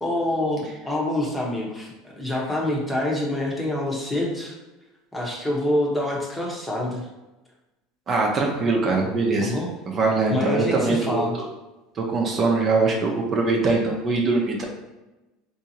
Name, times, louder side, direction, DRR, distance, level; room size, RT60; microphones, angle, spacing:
voice 1, 0.0-4.5 5.1-7.0 9.4-9.7 10.3-11.4, left 1 dB, 10° left, -2 dB, 1.0 m, -26 dB
voice 2, 8.1-9.6 9.9-11.3 12.0-14.6, right 3 dB, 40° right, -1 dB, 0.7 m, -22 dB
3.6 x 2.7 x 2.8 m, 1.0 s
supercardioid pair, 100°, 0 cm